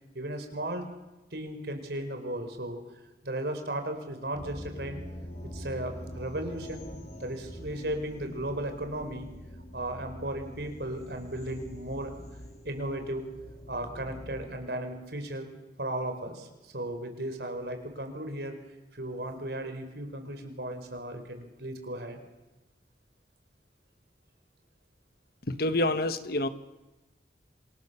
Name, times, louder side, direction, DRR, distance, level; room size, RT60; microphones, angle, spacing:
voice 1, 0.1-0.9 1.3-2.8 3.2-5.0 5.5-6.9 7.2-9.3 9.7-12.2 12.6-13.3 13.7-15.5 15.8-18.6 18.9-22.2, right 1 dB, 65° right, 6 dB, 4.9 m, -35 dB
sound 1, 4.3-14.5, equal, 40° left, 4.8 m, -44 dB
voice 2, 25.5-26.5, left 1 dB, 60° left, 11 dB, 1.5 m, -27 dB
27.0 x 26.5 x 7.1 m, 1.0 s
head